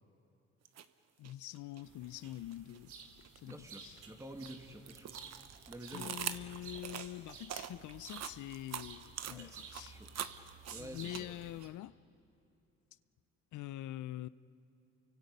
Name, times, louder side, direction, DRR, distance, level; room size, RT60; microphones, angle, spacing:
sound 1, 0.7-0.8 1.2-2.8 3.2-11.7, right 9 dB, 60° right, 1.0 m, -44 dB
voice 1, 1.2-2.9 3.4-4.0 5.9-10.0 10.7-12.0 13.5-14.3, left 14 dB, 75° left, 0.6 m, -45 dB
sound 2, 1.8-11.7, right 5 dB, 80° right, 2.6 m, -54 dB
voice 2, 3.4-5.1 5.7-6.3 9.3-10.1 10.7-11.4, right 1 dB, 10° right, 2.2 m, -49 dB
29.5 x 24.5 x 5.4 m
cardioid pair, 90°, 30 cm